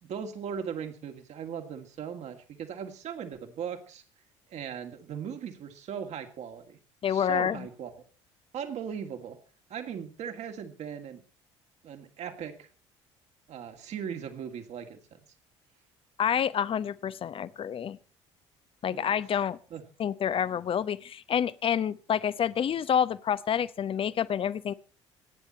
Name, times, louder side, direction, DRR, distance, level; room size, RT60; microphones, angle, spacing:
voice 1, 0.0-4.0 4.5-6.8 7.1-7.9 8.5-9.4 9.7-11.2 11.8-12.7 13.5-15.2 18.9-19.1 19.7-19.8, right 7 dB, 50° right, 7 dB, 2.3 m, -38 dB
voice 2, 7.0-7.7 16.2-18.0 18.8-19.6 20.0-24.7, left 8 dB, 35° left, 17 dB, 0.8 m, -28 dB
26.5 x 9.9 x 4.4 m, 0.38 s
figure-of-eight pair, 55°, 15 cm